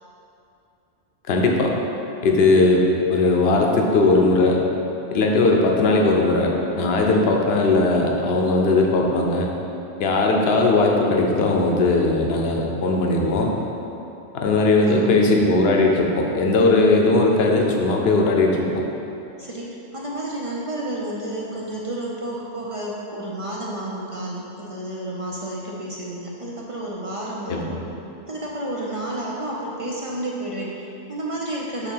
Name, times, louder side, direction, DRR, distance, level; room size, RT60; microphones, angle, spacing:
voice 1, 1.3-1.7 2.2-4.6 5.1-9.5 10.0-13.5 14.3-18.9 27.5-27.7, left 2 dB, 60° left, 0 dB, 0.9 m, -18 dB
voice 2, 14.8-15.3 19.4-27.8 28.3-31.9, right 1 dB, 40° right, -4 dB, 0.5 m, -31 dB
6.9 x 2.8 x 5.5 m, 2.9 s
omnidirectional pair, 1.3 m